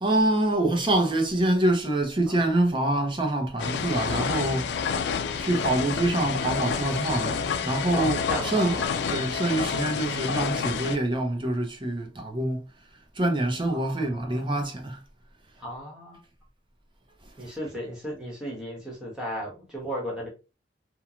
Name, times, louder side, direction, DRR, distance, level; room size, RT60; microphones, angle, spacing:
voice 1, 0.0-4.9 5.4-8.2 8.5-8.8 9.1-12.6 13.2-15.0, right 1 dB, 30° right, 0.6 m, -25 dB
sound 1, 3.6-11.0, left 6 dB, 75° left, 0.3 m, -29 dB
voice 2, 5.2-5.6 7.9-9.0 13.7-14.4 15.6-16.2 17.4-20.3, equal, 5° right, 1.1 m, -35 dB
3.0 x 2.3 x 2.4 m
head